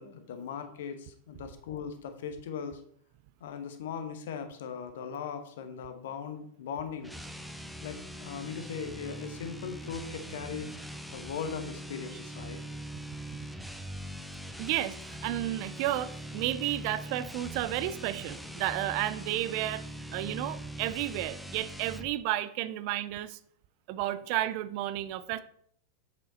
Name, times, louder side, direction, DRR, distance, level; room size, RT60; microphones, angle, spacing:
voice 1, 0.0-2.8 3.4-7.1 7.8-10.7 11.1-12.6, left 7 dB, 55° left, 8 dB, 1.0 m, -39 dB
sound 1, 7.0-22.1, right 1 dB, ahead, 0.6 m, -42 dB
voice 2, 14.6-23.4 23.9-25.4, right 14 dB, 45° right, 15 dB, 0.4 m, -32 dB
7.5 x 5.2 x 4.0 m, 0.63 s
figure-of-eight pair, 90°, 0 cm